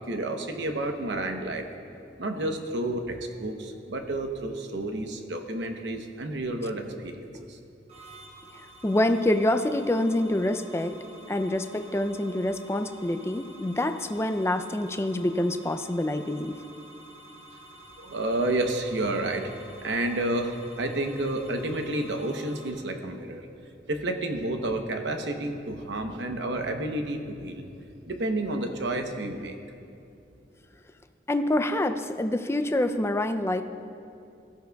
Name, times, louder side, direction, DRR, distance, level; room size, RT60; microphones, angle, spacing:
voice 1, 0.0-1.7 2.2-7.6 18.0-19.5 19.8-23.5 23.9-27.7 28.1-29.6, right 1 dB, 75° right, 5 dB, 0.9 m, -30 dB
sound 1, 7.9-22.7, right 1 dB, 35° right, 1.2 m, -50 dB
voice 2, 8.8-10.9 11.3-16.5 31.3-33.6, left 1 dB, 15° left, 8 dB, 0.4 m, -26 dB
16.5 x 13.0 x 2.3 m, 2.6 s
head